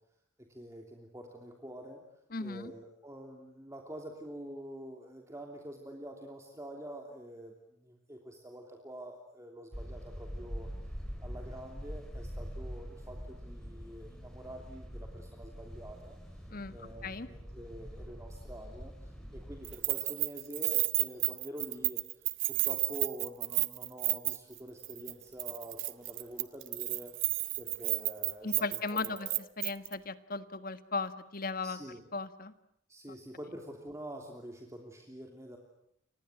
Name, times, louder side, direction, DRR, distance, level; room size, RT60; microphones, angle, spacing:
voice 1, 0.4-2.0 2.4-10.7 11.2-16.2 16.7-22.0 22.5-29.5 31.6-32.1 32.9-35.6, right 1 dB, 15° right, 2 dB, 3.0 m, -46 dB
voice 2, 2.3-2.7 16.5-16.7 17.0-17.3 28.4-29.3 29.6-31.8 32.1-32.5, left 3 dB, 50° left, 12 dB, 1.6 m, -36 dB
sound 1, 9.7-19.8, equal, 5° left, 6.0 m, -44 dB
Keys jangling, 19.6-24.6 24.8-25.1 25.4-29.9, right 19 dB, 80° right, 1.2 m, -32 dB
30.0 x 25.5 x 7.7 m, 0.71 s
head